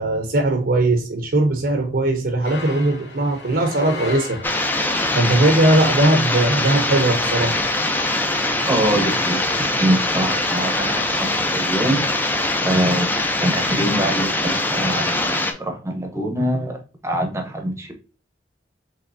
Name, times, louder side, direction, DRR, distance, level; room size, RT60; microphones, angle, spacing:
voice 1, 0.0-4.4 4.8-7.6, right 2 dB, 60° right, 4 dB, 0.8 m, -19 dB
sound 1, 2.4-5.0, left 2 dB, 75° left, 1.4 m, -34 dB
sound 2, 4.4-15.5, left 2 dB, 10° left, 0.5 m, -22 dB
voice 2, 8.7-12.1 12.6-13.1 13.4-17.9, right 1 dB, 15° right, 4 dB, 0.9 m, -24 dB
5.4 x 3.5 x 2.6 m, 0.34 s
head